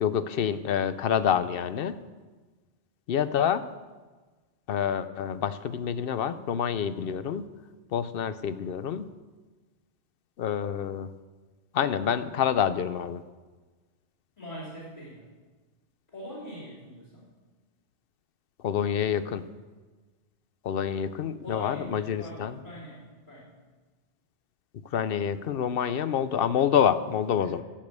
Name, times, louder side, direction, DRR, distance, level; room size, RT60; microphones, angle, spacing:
voice 1, 0.0-2.0 3.1-3.7 4.7-7.4 7.9-9.1 10.4-11.1 11.7-13.2 18.6-19.4 20.6-22.6 24.9-27.6, left 8 dB, 60° left, 13 dB, 0.7 m, -27 dB
voice 2, 14.4-15.3 16.1-17.3 21.4-23.5 27.4-27.6, left 1 dB, 35° left, -8 dB, 3.1 m, -42 dB
15.5 x 5.3 x 8.1 m, 1.3 s
omnidirectional pair, 1.2 m